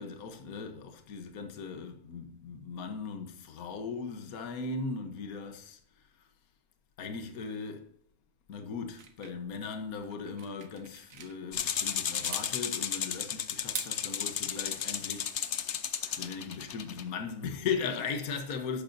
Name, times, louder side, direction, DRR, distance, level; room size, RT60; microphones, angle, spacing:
voice 1, 0.0-6.1 7.0-7.9 8.5-15.3 16.2-18.8, left 5 dB, 70° left, 1.5 m, -38 dB
sound 1, 9.0-11.4 11.7-12.5 13.5-14.4, right 6 dB, 60° right, 1.6 m, -43 dB
sound 2, 11.5-17.0, left 8 dB, 55° left, 1.0 m, -34 dB
12.0 x 9.2 x 2.7 m
omnidirectional pair, 1.6 m